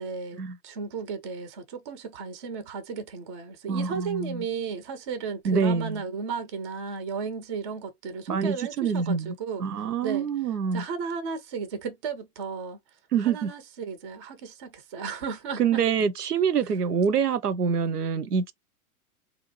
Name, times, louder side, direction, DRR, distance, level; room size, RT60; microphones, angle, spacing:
voice 1, 0.0-9.7 10.0-10.3 10.7-12.8 13.2-15.8, right 5 dB, 20° right, 0.3 m, -34 dB
voice 2, 3.7-4.4 5.4-6.0 8.3-9.3 9.6-10.8 13.1-13.5 15.6-18.5, right 6 dB, 85° right, 0.6 m, -25 dB
3.5 x 2.6 x 2.9 m
figure-of-eight pair, 100°, 45 cm